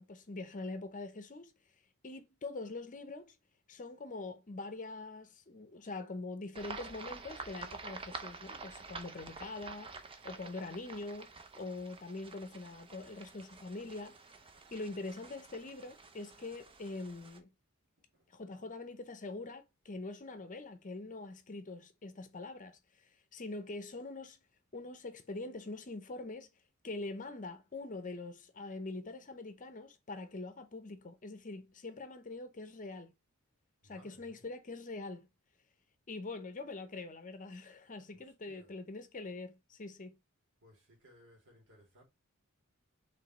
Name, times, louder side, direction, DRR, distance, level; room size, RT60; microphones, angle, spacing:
voice 1, 0.0-1.5 2.0-3.3 3.7-10.0 10.2-11.3 11.6-14.2 14.7-17.5 18.3-24.4 24.7-26.5 26.8-33.1 33.8-35.3 36.1-40.2, left 3 dB, 40° left, 0.7 m, -44 dB
sound 1, 6.5-17.4, right 4 dB, 25° right, 0.6 m, -49 dB
voice 2, 18.0-18.3 33.8-34.4 38.1-38.7 40.6-42.0, equal, 60° right, 2.6 m, -62 dB
5.0 x 3.3 x 3.1 m
head